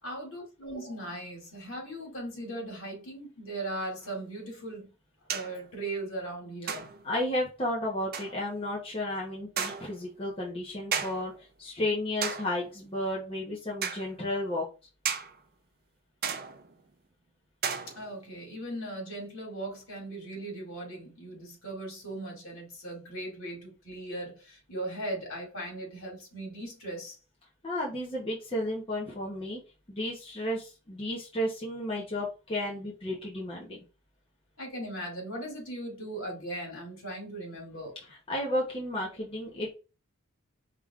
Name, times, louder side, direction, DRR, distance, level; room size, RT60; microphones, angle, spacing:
voice 1, 0.0-4.9 5.3-6.9 18.0-27.2 34.6-37.9, right 1 dB, 65° left, 2.2 m, -38 dB
sound 1, 4.0-4.1 5.3-5.6 6.7-7.2 8.1-8.4 9.6-10.0 10.9-11.4 12.2-12.7 13.8-14.1 15.0-15.4 16.2-16.7 17.6-18.2, right 7 dB, 40° right, 0.5 m, -34 dB
voice 2, 7.0-11.3 11.6-14.6 27.6-29.6 29.9-33.8 38.1-39.7, left 1 dB, 25° left, 0.9 m, -33 dB
4.9 x 3.6 x 2.4 m
head